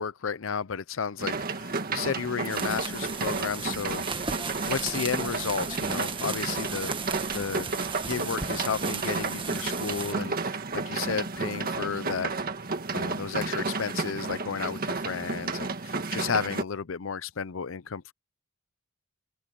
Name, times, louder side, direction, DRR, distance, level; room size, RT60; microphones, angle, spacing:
voice 1, 0.0-4.3 4.7-6.9 7.3-7.7 8.0-12.3 12.9-18.1, left 6 dB, 80° left, 0.6 m, -33 dB
sound 1, 1.2-16.6, right 3 dB, 50° right, 1.8 m, -32 dB
sound 2, 2.4-10.1, right 5 dB, 25° right, 1.7 m, -36 dB
open air
head